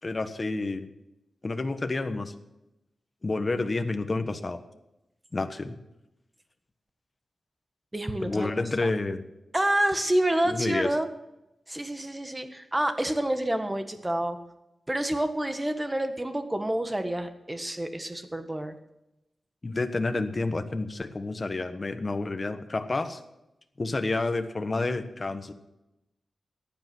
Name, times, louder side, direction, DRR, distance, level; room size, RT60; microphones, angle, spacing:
voice 1, 0.0-0.9 1.4-2.3 3.2-4.6 5.3-5.8 8.2-9.2 10.4-10.9 19.6-23.2 23.8-25.5, left 3 dB, 35° left, 8 dB, 1.2 m, -29 dB
voice 2, 7.9-8.5 8.8-8.9 9.5-11.1 11.7-14.4 14.9-18.7, right 1 dB, 15° right, 7 dB, 1.5 m, -28 dB
15.0 x 10.5 x 6.2 m, 0.90 s
wide cardioid pair, 95°, 0 cm